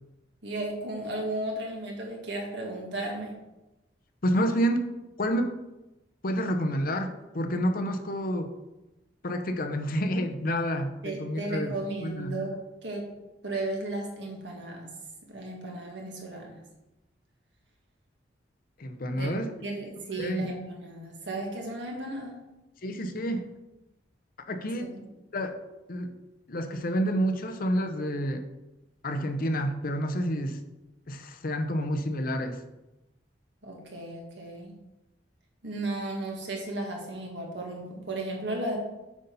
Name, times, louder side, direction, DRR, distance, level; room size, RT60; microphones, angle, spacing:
voice 1, 0.4-3.3 11.0-13.1 13.4-14.9 15.3-16.6 19.2-19.3 19.6-22.4 24.8-25.0 33.6-34.8 35.6-38.8, right 2 dB, 70° right, 0 dB, 1.9 m, -35 dB
voice 2, 4.2-4.9 5.2-5.5 6.2-8.5 9.2-11.7 12.0-12.4 18.8-19.5 20.2-20.5 22.8-23.5 24.5-24.9 25.3-25.6 25.9-26.1 26.5-28.4 29.0-30.6 31.1-32.6, equal, 50° left, 6 dB, 0.7 m, -29 dB
8.0 x 4.1 x 5.4 m, 1.0 s
head